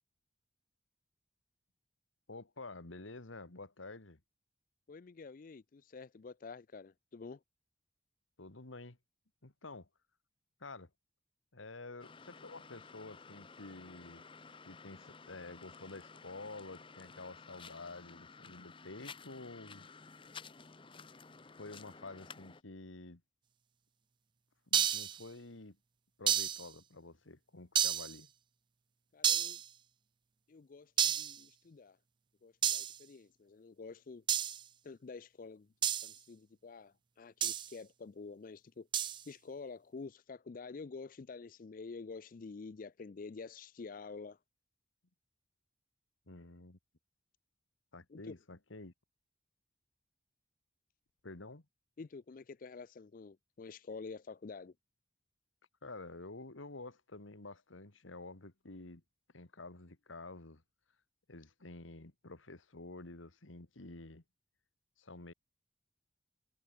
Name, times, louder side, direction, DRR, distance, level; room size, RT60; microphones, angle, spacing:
voice 1, 2.3-4.2 8.4-9.0 9.4-9.9 10.6-10.9 11.5-14.2 14.7-19.9 21.6-23.2 24.7-25.8 26.2-28.3 46.3-46.8 47.9-48.9 51.2-51.7 55.8-59.0 59.3-60.6 61.3-64.2 65.0-65.3, left 2 dB, 90° left, 1.9 m, -49 dB
voice 2, 4.9-7.4 29.1-29.6 30.5-32.0 32.4-34.2 34.8-35.7 36.0-38.9 39.3-44.4 48.1-48.3 52.0-54.7, left 4 dB, 45° left, 0.4 m, -48 dB
sound 1, 12.0-22.6, left 5 dB, 25° left, 0.9 m, -54 dB
sound 2, 24.7-25.2 26.3-26.7 27.7-28.2 29.2-29.6 31.0-31.4 32.6-33.0 34.3-34.6 35.8-36.1 37.4-37.7 38.9-39.2, right 9 dB, 25° right, 0.3 m, -31 dB
head